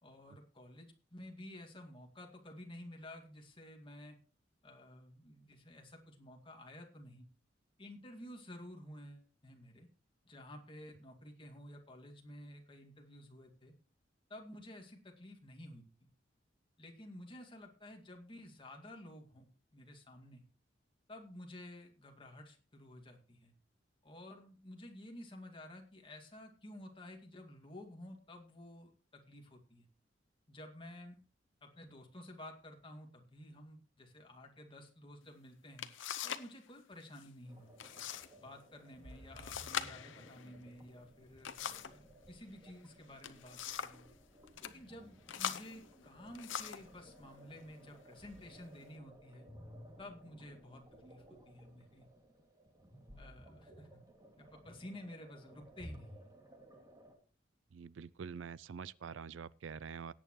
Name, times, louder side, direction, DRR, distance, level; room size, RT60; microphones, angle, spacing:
voice 1, 0.0-4.2 4.6-7.3 7.8-9.9 10.2-13.7 14.3-15.9 16.8-20.4 21.1-23.5 24.0-29.9 30.5-31.2 31.6-35.9 36.2-38.0 38.4-44.1 44.6-49.5 50.0-52.1 53.2-54.0 54.4-56.3, left 1 dB, 30° left, 2.2 m, -52 dB
sound 1, 35.3-35.4 35.8-36.5 36.8-37.3 37.8-38.3 38.6-38.7 39.4-42.0 43.0-44.1 44.5-44.8 45.3-46.9 47.7-47.9 48.4-48.9, left 8 dB, 80° left, 0.8 m, -42 dB
sound 2, 37.5-57.1, equal, 20° right, 2.4 m, -57 dB
voice 2, 57.7-60.1, right 6 dB, 80° right, 0.4 m, -46 dB
17.5 x 8.9 x 3.1 m
head